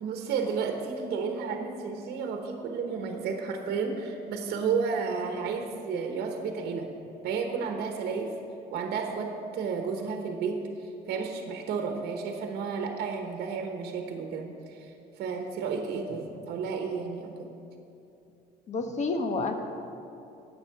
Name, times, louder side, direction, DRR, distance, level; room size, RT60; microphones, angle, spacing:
voice 1, 0.0-6.9 7.2-8.3 8.7-10.6 11.1-17.5, right 5 dB, 70° right, 4 dB, 1.1 m, -32 dB
voice 2, 18.7-19.5, left 3 dB, 45° left, 5 dB, 1.1 m, -29 dB
9.9 x 7.6 x 6.0 m, 2.8 s
cardioid pair, 110°, 17 cm